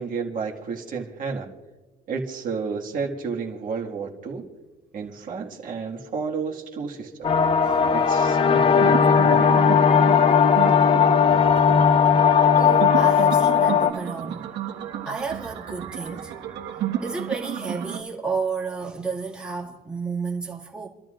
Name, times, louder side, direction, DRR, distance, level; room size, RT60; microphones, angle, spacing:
voice 1, 0.0-1.5 2.1-4.5 4.9-7.3 7.9-9.5, right 5 dB, 45° right, 1.9 m, -31 dB
sound 1, 7.2-13.9, left 7 dB, 30° left, 0.6 m, -17 dB
sound 2, 7.2-18.0, right 10 dB, 70° right, 1.6 m, -33 dB
voice 2, 12.5-14.5 15.1-16.3 17.0-20.9, right 4 dB, 5° right, 2.2 m, -31 dB
29.5 x 12.0 x 2.5 m
cardioid pair, 140°, 19 cm